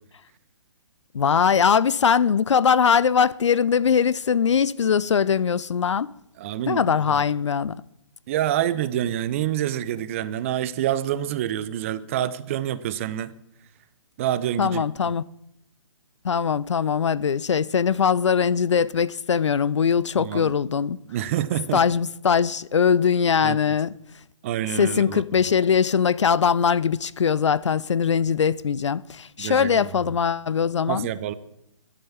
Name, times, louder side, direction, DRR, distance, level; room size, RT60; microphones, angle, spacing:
voice 1, 1.1-6.1 6.7-7.8 14.6-15.2 16.2-21.0 21.7-23.9 24.8-31.1, left 7 dB, 65° left, 0.5 m, -21 dB
voice 2, 6.4-7.2 8.3-13.3 14.2-14.8 20.2-20.5 21.1-21.8 23.4-23.6 24.4-25.2 29.4-29.9 30.9-31.3, right 11 dB, 25° right, 0.5 m, -27 dB
11.0 x 8.7 x 7.1 m
figure-of-eight pair, 140°, 17 cm